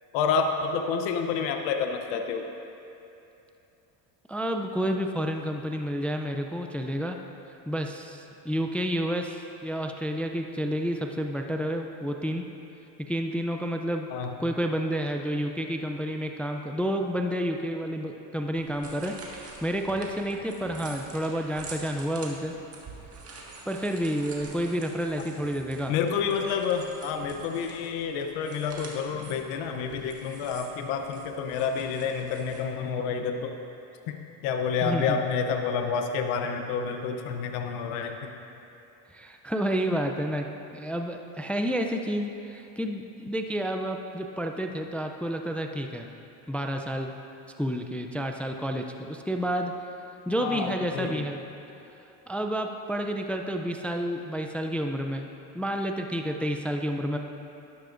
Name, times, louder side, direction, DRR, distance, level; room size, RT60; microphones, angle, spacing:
voice 1, 0.1-2.5 14.1-14.3 25.9-33.6 34.1-34.2 34.4-38.3 50.4-51.3, left 6 dB, 90° left, 5 dB, 0.8 m, -29 dB
voice 2, 4.3-7.2 7.5-12.4 13.1-14.1 14.4-22.5 23.7-25.9 34.8-35.2 39.1-40.5 40.7-46.1 46.5-47.1 47.6-49.7 50.3-51.4 52.3-55.3 55.5-57.2, equal, 5° left, 4 dB, 0.3 m, -30 dB
sound 1, 18.5-32.6, right 3 dB, 35° right, 1.6 m, -46 dB
11.5 x 11.5 x 2.5 m, 2.9 s
supercardioid pair, 105°, 43 cm